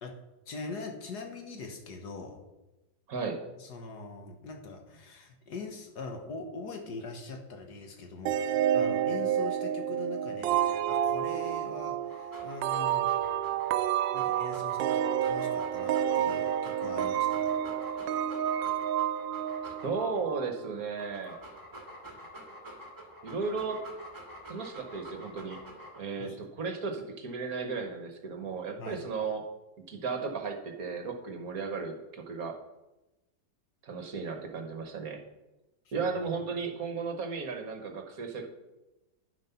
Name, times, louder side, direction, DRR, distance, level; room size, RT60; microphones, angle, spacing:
voice 1, 0.5-2.4 3.6-13.2 14.1-17.6 26.2-26.4 28.8-29.0 35.9-36.2, left 3 dB, 65° left, 4 dB, 1.7 m, -42 dB
voice 2, 3.1-3.4 19.6-21.4 23.2-23.8 24.5-25.6 26.0-29.4 29.9-32.5 33.8-35.2 35.9-38.5, right 4 dB, 55° right, 4 dB, 1.4 m, -35 dB
sound 1, 8.3-20.7, right 10 dB, 85° right, 1.3 m, -29 dB
Dog, 12.0-20.2 20.8-26.2, equal, 10° right, 2.0 m, -47 dB
9.9 x 7.4 x 5.7 m, 1.0 s
omnidirectional pair, 1.9 m